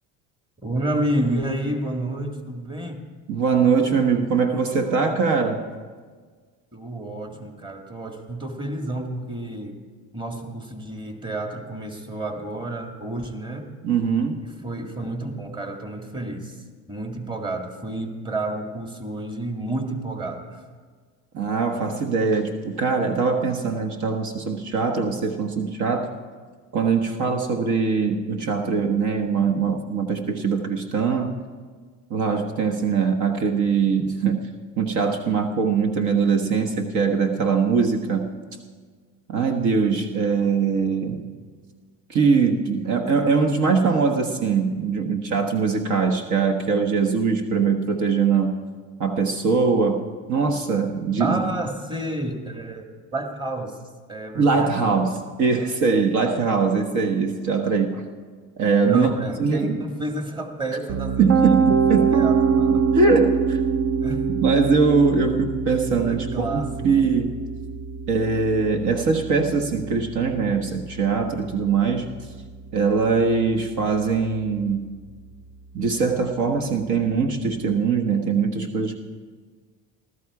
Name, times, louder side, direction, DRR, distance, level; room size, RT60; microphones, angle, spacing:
voice 1, 0.6-3.1 6.7-9.8 10.1-13.7 14.4-20.6 51.2-53.8 54.1-55.0 58.8-62.8 64.0-64.3 66.1-67.0, right 1 dB, 15° right, 4 dB, 1.8 m, -30 dB
voice 2, 3.3-5.6 13.8-14.4 21.3-26.1 26.7-31.3 32.1-34.5 34.8-38.4 39.3-41.2 42.1-48.6 49.0-51.4 54.3-58.1 58.6-59.1 59.4-59.8 61.2-62.2 62.9-63.6 64.3-67.3 68.1-72.0 72.7-74.9 75.7-79.0, right 5 dB, 55° right, 5 dB, 1.3 m, -22 dB
Piano, 60.9-72.8, right 6 dB, 40° right, 0.6 m, -25 dB
15.5 x 13.0 x 4.7 m, 1.5 s
supercardioid pair, 105°, 34 cm